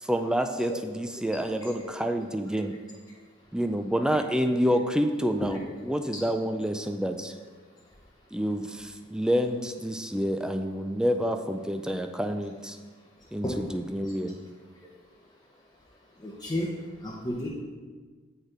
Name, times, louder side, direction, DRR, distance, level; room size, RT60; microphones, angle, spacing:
voice 1, 0.0-2.8 3.5-5.6 5.8-7.3 8.3-12.8 13.3-14.4, equal, 5° right, 6 dB, 0.3 m, -28 dB
voice 2, 16.2-16.7 17.0-17.5, left 1 dB, 20° left, -4 dB, 0.8 m, -32 dB
8.0 x 4.5 x 4.9 m, 1.4 s
head